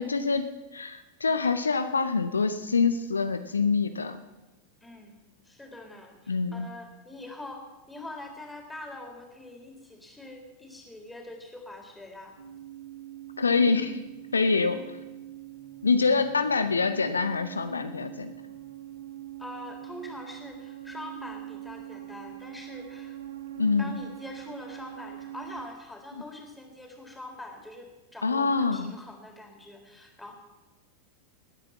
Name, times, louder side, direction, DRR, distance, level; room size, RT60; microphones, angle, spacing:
voice 1, 0.0-4.2 6.3-6.7 13.4-14.0 14.3-14.8 15.8-18.3 23.6-23.9 28.2-28.9, left 4 dB, 75° left, 10 dB, 0.8 m, -25 dB
voice 2, 4.8-5.2 5.4-12.3 14.4-15.0 19.4-23.2 23.8-30.3, left 2 dB, 5° left, 2 dB, 3.8 m, -44 dB
sound 1, 12.4-25.7, right 13 dB, 65° right, 2.0 m, -43 dB
19.5 x 9.6 x 7.2 m, 1.1 s
figure-of-eight pair, 90°, 0 cm